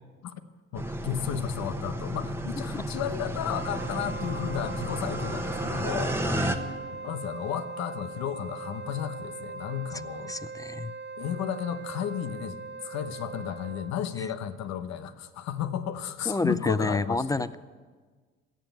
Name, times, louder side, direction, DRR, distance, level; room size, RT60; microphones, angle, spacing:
voice 1, 0.7-6.1 7.0-10.4 11.2-17.5, left 9 dB, 65° left, 11 dB, 1.0 m, -33 dB
sound 1, 0.7-6.6, right 1 dB, 10° right, 1.2 m, -32 dB
Wind instrument woodwind instrument, 3.4-14.0, right 4 dB, 35° right, 0.9 m, -40 dB
voice 2, 10.3-10.9 14.2-14.3 16.3-17.5, left 3 dB, 10° left, 16 dB, 0.4 m, -29 dB
15.0 x 7.1 x 9.1 m, 1.5 s
supercardioid pair, 70°, 30 cm